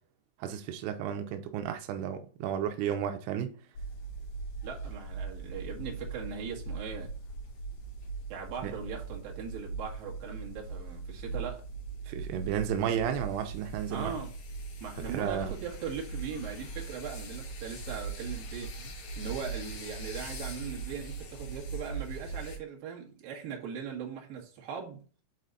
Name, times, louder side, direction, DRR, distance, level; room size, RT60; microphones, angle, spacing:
voice 1, 0.4-3.5 8.6-8.7 12.1-14.1 15.1-15.5, right 9 dB, 90° right, 2.3 m, -33 dB
sound 1, 3.7-22.6, right 4 dB, 55° left, 3.0 m, -40 dB
voice 2, 4.6-7.2 8.3-11.6 13.9-14.3 14.8-25.0, right 6 dB, 60° right, 2.9 m, -40 dB
7.8 x 4.2 x 4.0 m
omnidirectional pair, 5.6 m